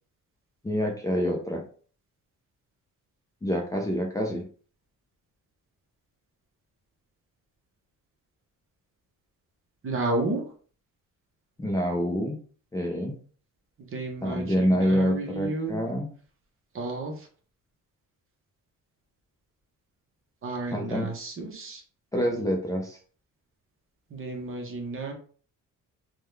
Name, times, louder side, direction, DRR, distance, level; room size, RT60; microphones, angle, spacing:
voice 1, 0.6-1.6 3.4-4.4 11.6-12.4 12.7-13.2 14.2-16.1 20.7-21.1 22.1-23.0, equal, 10° left, -2 dB, 0.4 m, -26 dB
voice 2, 9.8-10.4 13.8-15.8 16.7-17.3 20.4-21.8 24.1-25.1, right 2 dB, 40° right, 2 dB, 0.9 m, -32 dB
3.6 x 2.2 x 3.1 m, 0.43 s
cardioid pair, 140°, 33 cm